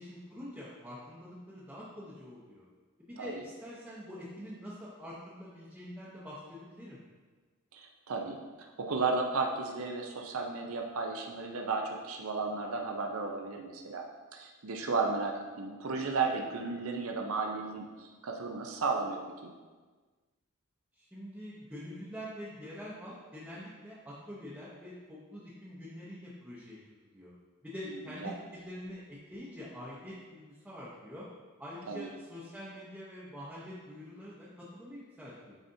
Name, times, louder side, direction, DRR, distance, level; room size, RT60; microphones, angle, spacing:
voice 1, 0.0-2.7 3.1-7.0 20.9-26.8 27.1-27.3 27.6-31.3 31.6-35.6, equal, 5° right, -9 dB, 0.8 m, -45 dB
voice 2, 7.7-14.0 14.3-19.5 27.9-28.3 31.9-32.1, right 4 dB, 65° right, 2 dB, 0.6 m, -34 dB
9.0 x 4.1 x 2.7 m, 1.4 s
head